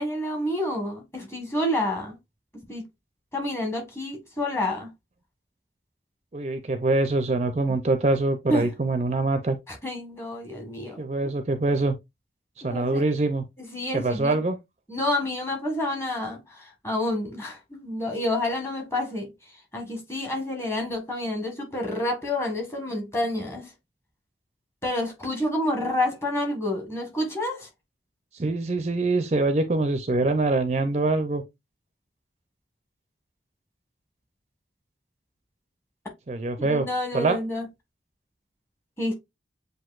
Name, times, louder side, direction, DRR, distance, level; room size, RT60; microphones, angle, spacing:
voice 1, 0.0-2.2 2.5-2.8 3.3-4.9 8.5-8.7 9.7-11.0 12.6-13.0 13.6-14.4 14.9-19.3 19.7-23.7 24.8-27.7 36.6-37.7 39.0-39.1, left 1 dB, 15° left, 1.4 m, -29 dB
voice 2, 6.3-9.6 11.0-12.0 12.6-13.4 13.9-14.6 28.3-31.4 36.3-36.9 37.1-37.4, right 2 dB, 35° right, 0.5 m, -24 dB
7.6 x 2.7 x 2.4 m
head